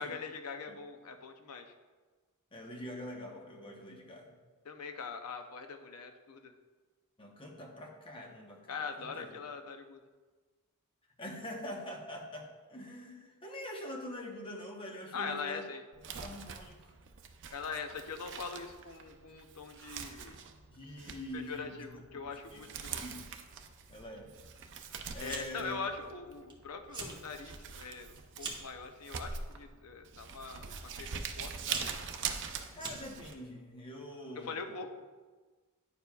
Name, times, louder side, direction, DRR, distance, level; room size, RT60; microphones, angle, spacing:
voice 1, 0.0-1.7 4.6-6.5 8.7-10.0 15.1-15.8 17.5-20.4 21.3-23.0 25.2-31.8 34.4-34.9, left 5 dB, 75° left, 6 dB, 0.6 m, -42 dB
voice 2, 2.5-4.4 7.2-8.6 9.0-9.3 11.2-15.7 16.1-16.9 20.7-22.6 23.0-23.3 23.9-24.3 25.1-25.8 32.7-34.7, equal, 25° left, 1 dB, 1.0 m, -45 dB
Crumpling crinkling, 15.9-33.3, right 6 dB, 55° right, 0.6 m, -44 dB
Fire, 25.2-25.7 26.0-26.5 26.8-27.2 27.6-28.8 29.5-29.9 30.8-30.9 31.4-33.4, right 3 dB, 20° right, 1.0 m, -43 dB
10.0 x 6.8 x 2.3 m, 1.3 s
head